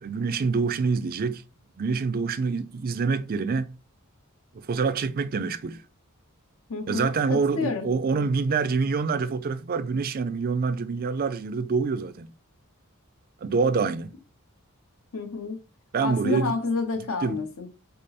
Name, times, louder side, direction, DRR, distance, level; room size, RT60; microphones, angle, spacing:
voice 1, 0.0-1.4 1.8-3.7 4.5-5.8 6.9-12.3 13.4-14.1 15.9-16.5 17.2-17.4, right 4 dB, 40° right, 0.4 m, -26 dB
voice 2, 6.7-7.9 15.1-15.6 16.0-17.7, left 4 dB, 65° left, 0.9 m, -29 dB
5.2 x 2.0 x 4.2 m
head